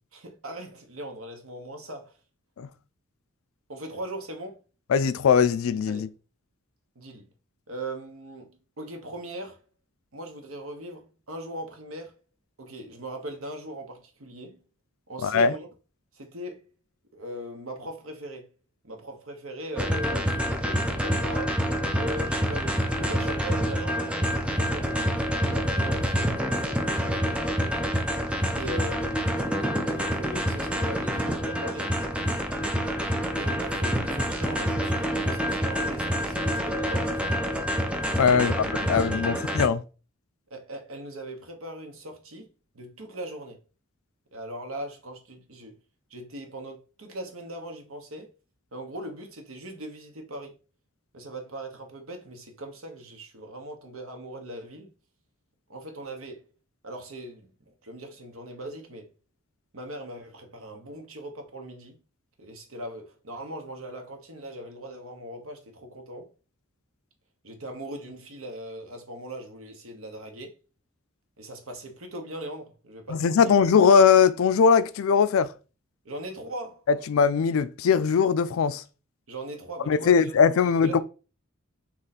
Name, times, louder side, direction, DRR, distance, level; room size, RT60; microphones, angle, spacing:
voice 1, 0.1-2.2 3.7-4.6 5.9-6.1 6.9-7.3 7.7-9.6 10.1-12.2 12.6-14.6 15.1-15.7 16.1-16.6 17.1-18.5 18.8-21.6 21.9-25.0 25.4-27.8 28.6-29.5 29.8-31.9 33.4-37.6 38.3-39.5 40.5-43.6 44.3-45.8 46.1-48.3 48.7-50.5 51.1-54.9 55.7-56.4 56.8-59.1 59.7-62.0 62.4-66.3 67.4-70.5 71.4-73.5 76.0-76.8 79.3-80.3 80.6-81.0, right 1 dB, 90° right, 1.1 m, -40 dB
voice 2, 4.9-6.1 15.2-15.5 38.1-38.5 38.9-39.8 73.1-75.5 77.1-78.8 79.9-81.0, left 6 dB, 75° left, 0.4 m, -20 dB
sound 1, 19.8-39.7, equal, 5° right, 0.4 m, -27 dB
3.8 x 3.0 x 4.1 m
head